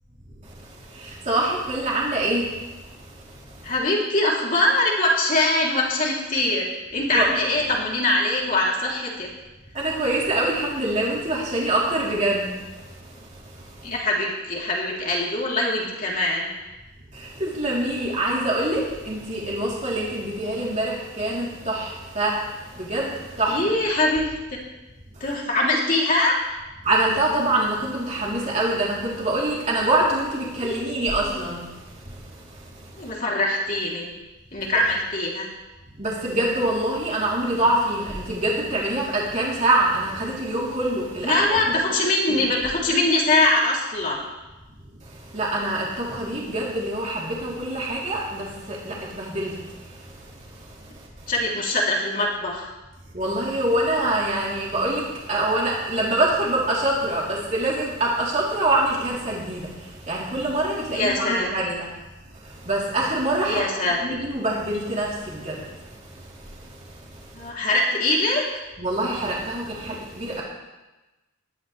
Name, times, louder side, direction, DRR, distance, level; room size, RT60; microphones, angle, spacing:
voice 1, 0.4-3.7 7.1-7.3 9.7-14.0 17.1-23.8 25.1-25.3 26.8-33.1 36.0-41.8 42.3-42.5 44.9-51.3 53.1-61.9 62.3-63.7 64.0-67.5 68.8-70.4, right 1 dB, 35° right, -5 dB, 3.4 m, -26 dB
voice 2, 3.6-6.6 6.9-9.3 13.8-16.5 23.5-24.3 25.2-26.4 30.6-30.8 31.2-31.4 32.9-34.1 34.5-35.5 41.2-44.2 51.3-52.7 60.9-61.8 63.5-64.2 67.3-68.4, left 2 dB, 40° left, -3 dB, 3.2 m, -23 dB
20.0 x 12.5 x 3.4 m, 1.1 s
head